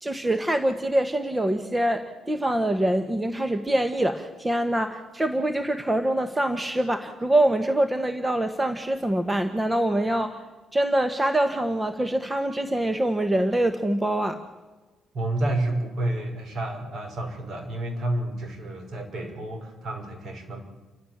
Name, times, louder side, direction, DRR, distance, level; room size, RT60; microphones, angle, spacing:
voice 1, 0.0-10.4 10.7-14.4, right 1 dB, 15° right, 9 dB, 1.4 m, -24 dB
voice 2, 15.1-20.6, right 1 dB, 60° right, 4 dB, 5.6 m, -30 dB
30.0 x 13.0 x 7.4 m, 1.2 s
cardioid pair, 90°, 0 cm